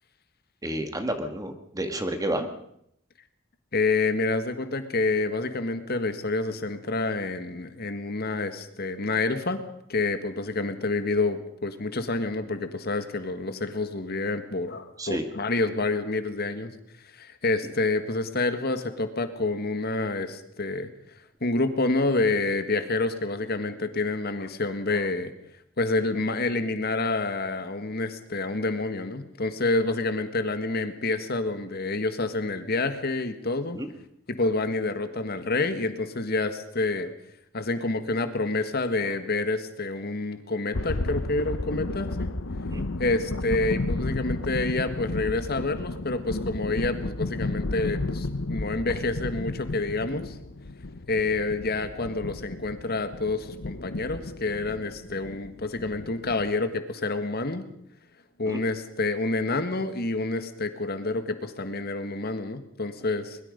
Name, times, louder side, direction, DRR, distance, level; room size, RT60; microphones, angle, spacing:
voice 1, 0.6-2.5 15.0-15.2 33.7-33.9 42.7-42.8 58.5-58.6, right 1 dB, 20° right, 7 dB, 1.8 m, -30 dB
voice 2, 3.7-9.6 9.9-16.7 17.1-20.9 21.4-25.3 25.8-33.8 34.3-37.1 37.5-42.3 43.0-50.4 51.1-57.7 58.4-63.4, left 3 dB, 50° left, 9 dB, 1.7 m, -28 dB
sound 1, 40.7-56.5, left 2 dB, 75° left, 1.0 m, -33 dB
23.0 x 21.5 x 5.3 m, 0.73 s
head